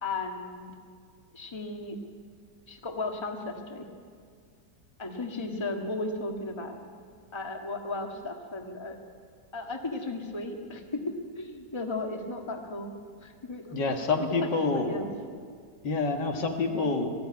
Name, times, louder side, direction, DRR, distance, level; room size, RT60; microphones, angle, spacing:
voice 1, 0.0-0.7 1.3-2.0 2.7-3.9 5.0-6.8 7.3-9.0 9.5-11.0 11.4-12.9 13.2-13.8 14.2-15.1, left 2 dB, 15° left, 2 dB, 1.6 m, -35 dB
voice 2, 13.7-15.0 15.8-17.1, left 3 dB, 75° left, 3 dB, 2.4 m, -27 dB
19.5 x 14.5 x 9.6 m, 2.1 s
omnidirectional pair, 1.9 m